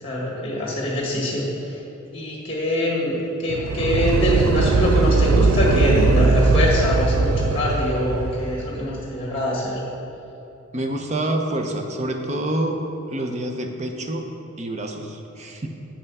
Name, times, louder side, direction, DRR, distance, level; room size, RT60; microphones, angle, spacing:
voice 1, 0.0-1.8 2.1-9.8, left 1 dB, 25° left, -4 dB, 1.7 m, -24 dB
sound 1, 3.5-8.7, right 3 dB, 85° right, 0.4 m, -20 dB
voice 2, 10.7-12.8 13.1-14.3 14.6-15.7, right 1 dB, 35° right, 4 dB, 0.6 m, -27 dB
7.1 x 5.6 x 5.4 m, 2.8 s
head